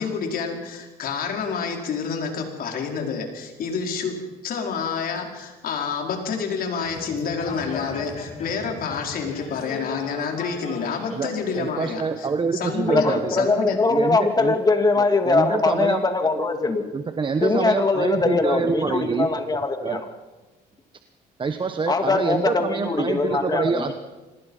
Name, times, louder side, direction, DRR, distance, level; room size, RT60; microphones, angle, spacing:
voice 1, 0.0-4.1 4.4-12.3 12.5-13.8, left 5 dB, 60° left, 2 dB, 4.7 m, -28 dB
sound 1, 6.8-11.7, left 4 dB, 45° left, 5.3 m, -37 dB
voice 2, 11.6-13.5 13.9-14.6 15.0-16.0 16.9-20.0 21.4-23.9, right 5 dB, 30° right, 8 dB, 1.1 m, -26 dB
voice 3, 12.9-16.8 17.4-20.0 21.9-23.9, left 3 dB, 25° left, 6 dB, 2.5 m, -22 dB
26.0 x 20.0 x 5.6 m, 1.2 s
cardioid pair, 110°, 17 cm